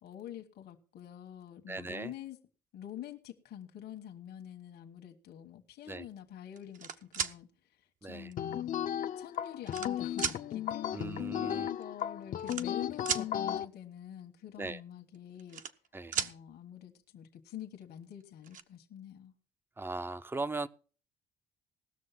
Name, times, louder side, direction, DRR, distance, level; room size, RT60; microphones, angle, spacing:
voice 1, 0.0-2.4 2.7-8.7 9.1-15.6 16.1-19.3, left 10 dB, 70° left, 1.4 m, -47 dB
voice 2, 1.7-2.1 5.9-6.1 8.0-8.3 10.9-11.7 14.6-14.8 15.9-16.2 19.8-20.7, right 3 dB, 15° right, 0.6 m, -38 dB
sound 1, 6.6-7.3 8.3-8.4 9.2-9.9 10.2-10.4 11.5-11.6 11.8-12.0 12.4-13.3 15.1-15.9 16.1-16.3 17.8-17.9 18.2-18.6, right 7 dB, 50° right, 0.9 m, -35 dB
sound 2, 8.4-13.6, left 10 dB, 50° left, 0.7 m, -35 dB
18.0 x 6.5 x 5.9 m
cardioid pair, 110°, 17 cm